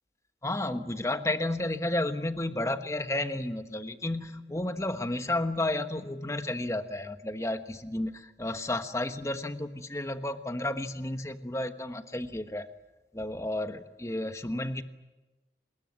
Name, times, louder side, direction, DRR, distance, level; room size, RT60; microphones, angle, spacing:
voice 1, 0.4-12.7 13.1-14.8, left 1 dB, 15° left, 9 dB, 1.2 m, -32 dB
24.5 x 21.0 x 9.4 m, 1.1 s
head